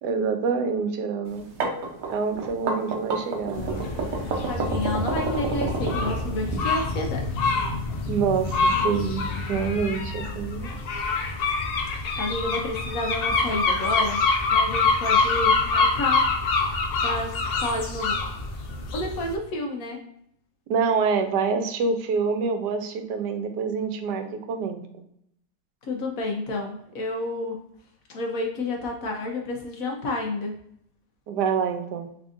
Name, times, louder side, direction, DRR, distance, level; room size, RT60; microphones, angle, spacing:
voice 1, 0.0-1.4 2.1-3.8 8.1-9.2 9.5-10.7 20.7-24.8 31.3-32.1, right 5 dB, 90° right, 6 dB, 1.2 m, -26 dB
sound 1, 1.3-6.6, right 4 dB, 65° right, 1.1 m, -29 dB
sound 2, 3.5-19.3, left 4 dB, 85° left, 0.5 m, -26 dB
voice 2, 4.5-7.4 12.2-14.2 14.5-16.3 16.6-16.8 17.0-18.1 18.9-20.0 25.9-27.6 28.1-30.5, left 2 dB, 65° left, 2 dB, 1.0 m, -30 dB
3.7 x 3.3 x 2.5 m, 0.72 s
omnidirectional pair, 1.7 m